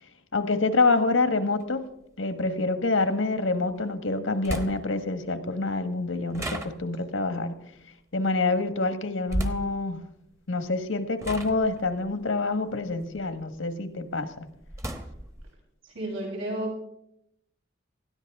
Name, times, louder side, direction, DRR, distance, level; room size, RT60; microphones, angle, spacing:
voice 1, 0.3-1.8 2.2-7.6 8.1-10.0 10.5-14.5, left 3 dB, 85° left, 8 dB, 1.5 m, -26 dB
sound 1, 1.6-1.7 3.7-3.8 4.4-5.1 6.3-7.2 9.3-9.8 10.7-10.9 11.2-13.6 14.0-15.5, equal, 15° right, 1.0 m, -34 dB
voice 2, 15.8-16.8, right 1 dB, 90° right, -2 dB, 7.6 m, -32 dB
20.0 x 14.0 x 3.6 m, 0.75 s
head